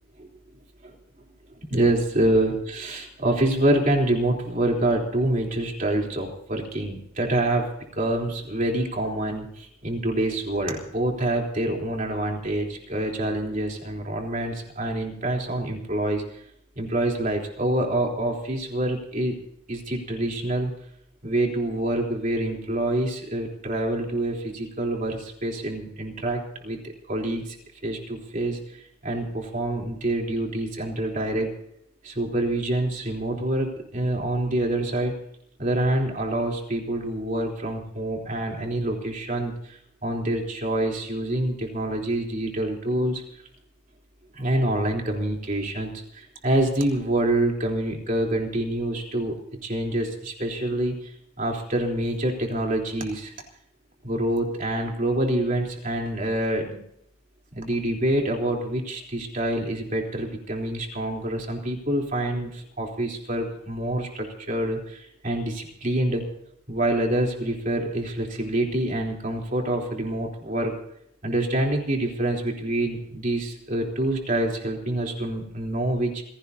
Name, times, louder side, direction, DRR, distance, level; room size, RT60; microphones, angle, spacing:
voice 1, 1.7-7.7 8.0-16.2 16.8-19.4 19.7-20.7 21.2-27.6 27.8-28.6 29.0-31.5 32.0-35.1 35.6-43.2 44.3-49.4 49.6-50.9 51.4-53.3 54.0-56.8 57.5-66.2 66.7-70.7 71.2-76.2, right 1 dB, 40° right, 0 dB, 3.6 m, -26 dB
27.5 x 17.0 x 2.8 m, 0.71 s
head